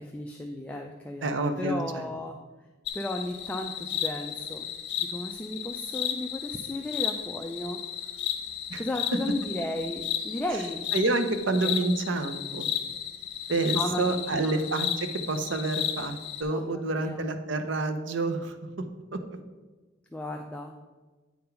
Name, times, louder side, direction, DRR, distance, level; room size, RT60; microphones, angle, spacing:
voice 1, 0.0-2.4 2.9-4.6 5.0-7.8 8.8-10.8 11.6-11.8 13.7-14.6 16.5-17.2 20.1-20.7, left 1 dB, 5° left, 2 dB, 0.3 m, -34 dB
voice 2, 1.2-2.1 8.7-8.8 10.9-12.7 13.5-18.5 19.1-19.2, right 2 dB, 75° right, 7 dB, 0.7 m, -28 dB
sound 1, 2.9-16.4, left 10 dB, 55° left, 0.8 m, -34 dB
8.5 x 3.9 x 5.6 m, 1.2 s
head